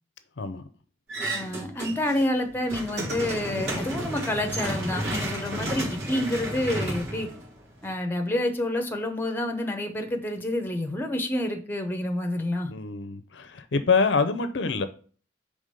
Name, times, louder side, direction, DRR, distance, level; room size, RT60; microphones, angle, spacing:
sound 1, 1.1-2.2 2.5-7.9, right 1 dB, 60° right, 2.5 m, -32 dB
voice 1, 1.3-7.3 7.8-12.7, left 1 dB, 10° left, 0.8 m, -28 dB
voice 2, 12.7-14.9, left 4 dB, 70° left, 0.5 m, -25 dB
5.0 x 3.5 x 5.3 m
head